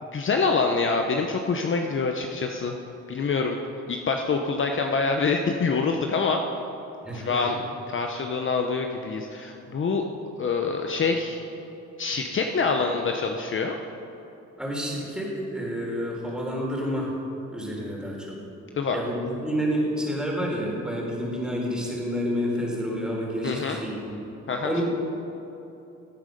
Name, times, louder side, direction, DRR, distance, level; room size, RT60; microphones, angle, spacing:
voice 1, 0.1-2.7 3.1-3.6 3.9-6.4 7.1-7.6 7.9-10.0 10.4-11.4 12.0-13.8 18.8-19.0 23.4-23.8 24.5-24.8, left 4 dB, 40° left, 3 dB, 0.9 m, -25 dB
voice 2, 7.1-7.6 14.6-17.1 17.5-18.4 18.9-24.2 24.6-24.8, equal, 5° right, -3 dB, 3.7 m, -29 dB
16.5 x 9.1 x 5.2 m, 2.9 s
cardioid pair, 90°, 30 cm